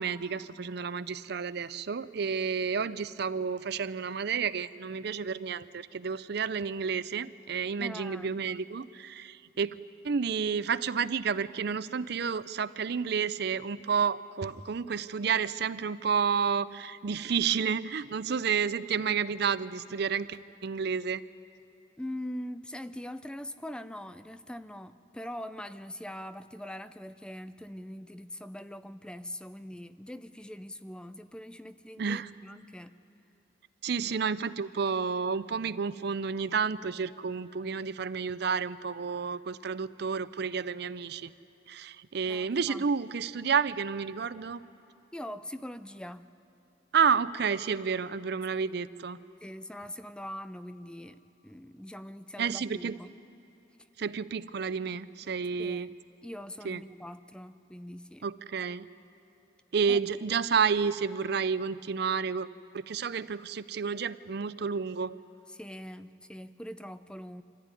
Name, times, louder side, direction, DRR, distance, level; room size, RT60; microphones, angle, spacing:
voice 1, 0.0-9.7 10.0-21.2 32.0-32.3 33.8-41.3 41.7-44.6 46.9-49.2 52.4-52.9 54.0-55.9 56.6-56.8 58.2-58.9 59.7-62.5 62.7-65.2, right 6 dB, 60° right, 15 dB, 0.5 m, -30 dB
voice 2, 7.8-8.3 22.0-32.9 34.0-34.1 42.3-42.9 45.1-46.3 49.4-53.1 55.6-56.0 56.2-58.3 59.9-60.0 65.5-67.4, left 1 dB, 5° left, 12 dB, 0.4 m, -42 dB
25.5 x 15.0 x 9.7 m, 3.0 s
head